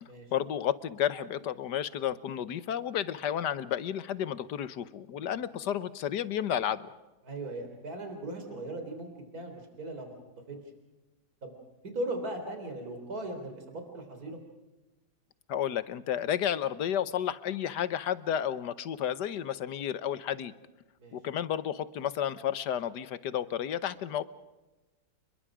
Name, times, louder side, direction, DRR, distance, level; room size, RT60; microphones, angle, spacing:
voice 1, 0.3-6.9 15.5-20.5 21.1-24.2, left 10 dB, 70° left, 15 dB, 1.5 m, -32 dB
voice 2, 7.2-10.2 10.5-10.6 11.4-11.6 11.8-14.4 21.0-21.2, right 1 dB, 55° right, 5 dB, 4.1 m, -38 dB
29.5 x 21.5 x 5.0 m, 1.1 s
omnidirectional pair, 1.9 m